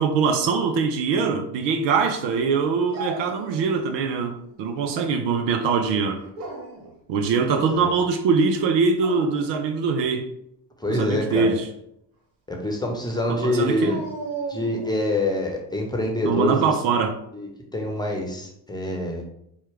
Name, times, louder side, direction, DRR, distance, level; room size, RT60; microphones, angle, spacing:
voice 1, 0.0-6.2 7.1-10.3 10.9-11.7 13.3-14.0 16.2-17.2, right 5 dB, 60° right, 6 dB, 0.6 m, -23 dB
Dog, 2.9-4.1 4.4-5.1 6.2-6.9 8.8-9.5 13.8-15.1, right 3 dB, 80° right, 1.0 m, -36 dB
voice 2, 7.5-7.9 10.8-11.5 12.5-14.0 14.5-16.7 17.3-19.2, left 1 dB, 10° left, 1 dB, 1.0 m, -26 dB
4.5 x 2.3 x 3.4 m, 0.76 s
hypercardioid pair, 60°, 49 cm